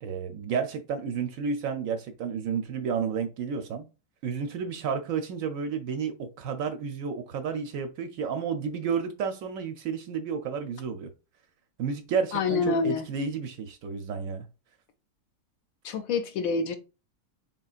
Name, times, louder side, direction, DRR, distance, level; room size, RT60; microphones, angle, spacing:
voice 1, 0.0-3.9 4.2-11.1 11.8-14.5, right 6 dB, 70° right, 0.9 m, -31 dB
voice 2, 12.3-13.1 15.8-16.8, left 5 dB, 70° left, 0.9 m, -27 dB
3.9 x 3.6 x 2.4 m
omnidirectional pair, 1.7 m